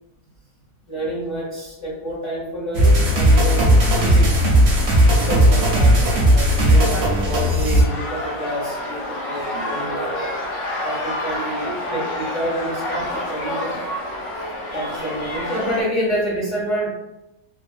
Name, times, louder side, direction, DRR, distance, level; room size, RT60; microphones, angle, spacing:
voice 1, 0.9-3.7 3.9-4.3 5.2-10.3 10.8-13.8 14.7-16.9, equal, 20° left, -7 dB, 0.9 m, -28 dB
sound 1, 2.7-7.8, equal, 55° right, 0.7 m, -15 dB
sound 2, 7.8-15.8, left 1 dB, 65° left, 0.8 m, -28 dB
2.8 x 2.1 x 2.4 m, 0.94 s
omnidirectional pair, 1.7 m